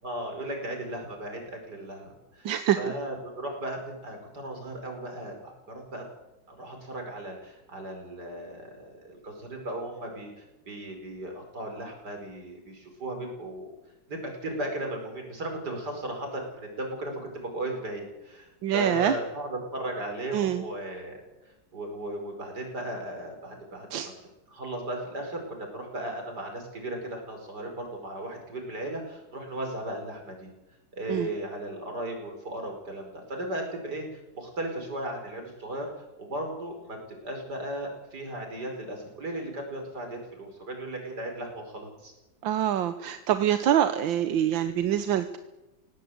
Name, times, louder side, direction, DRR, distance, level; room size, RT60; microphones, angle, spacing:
voice 1, 0.0-6.0 6.5-13.7 14.1-17.1 17.5-21.2 21.7-23.9 24.5-30.5 30.9-35.9 36.2-37.0 37.2-42.1, right 1 dB, 60° right, 3 dB, 5.6 m, -36 dB
voice 2, 2.4-2.8 18.6-19.2 20.3-20.7 23.9-24.1 31.1-31.3 42.4-45.4, right 10 dB, 85° right, 10 dB, 1.6 m, -25 dB
20.0 x 17.5 x 7.9 m, 1.0 s
omnidirectional pair, 2.0 m